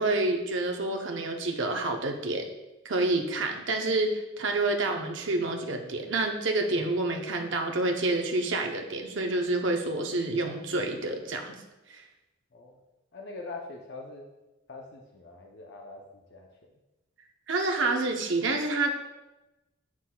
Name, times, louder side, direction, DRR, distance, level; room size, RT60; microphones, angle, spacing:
voice 1, 0.0-2.5 2.8-11.5 11.9-12.0 17.5-18.9, right 2 dB, 65° right, 3 dB, 0.7 m, -28 dB
voice 2, 13.1-14.2 14.7-16.0 16.3-16.5, left 3 dB, 55° left, 0 dB, 0.6 m, -42 dB
7.5 x 6.0 x 2.3 m, 1.0 s
head